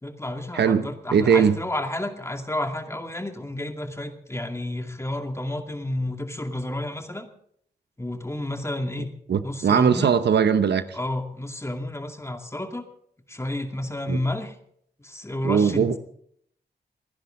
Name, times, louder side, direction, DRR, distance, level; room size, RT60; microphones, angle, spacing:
voice 1, 0.0-7.3 8.0-9.1 9.4-10.1 10.9-12.8 13.3-14.5 15.0-16.0, left 1 dB, 15° left, 2.3 m, -31 dB
voice 2, 0.5-1.6 9.3-11.0 14.1-14.2 15.4-16.0, right 7 dB, 90° right, 0.9 m, -20 dB
29.5 x 10.5 x 3.8 m
wide cardioid pair, 85°, 17 cm